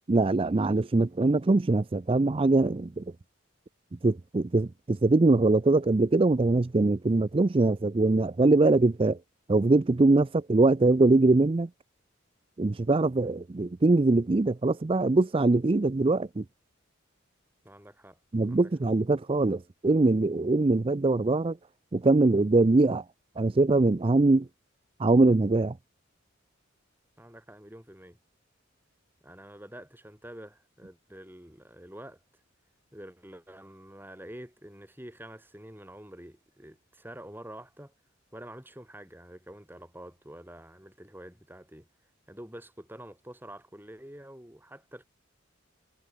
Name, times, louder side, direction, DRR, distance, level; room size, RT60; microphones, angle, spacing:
voice 1, 0.1-3.0 4.0-9.2 9.5-11.7 12.6-16.4 18.3-21.6 21.9-23.0 23.4-24.5 25.0-25.8, right 2 dB, 25° right, 0.4 m, -22 dB
voice 2, 17.6-18.2 18.5-18.7 27.2-28.2 29.2-32.2 32.9-37.9 38.3-41.9 42.3-45.0, right 1 dB, 10° right, 4.6 m, -47 dB
head